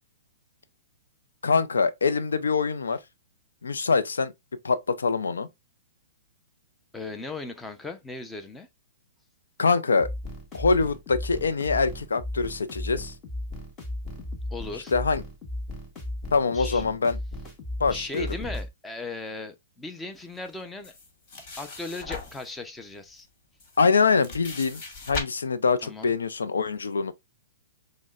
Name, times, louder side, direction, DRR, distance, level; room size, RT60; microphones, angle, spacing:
voice 1, 1.4-3.0 3.6-4.3 4.6-5.5 9.6-10.1 10.5-13.1 14.9-15.2 16.3-17.2 17.8-18.3 23.8-24.8 25.1-27.1, left 4 dB, 90° left, 0.5 m, -24 dB
voice 2, 6.9-8.7 14.5-14.9 16.5-16.8 17.9-20.9 21.6-23.3 25.8-26.1, left 3 dB, 10° left, 0.6 m, -37 dB
Simple Four to the Floor Loop, 10.0-18.7, left 1 dB, 25° left, 1.3 m, -35 dB
sound 1, 20.8-22.5 23.2-23.3 23.6-25.2, left 3 dB, 45° left, 1.7 m, -38 dB
6.1 x 2.1 x 2.4 m
hypercardioid pair, 130°, 0 cm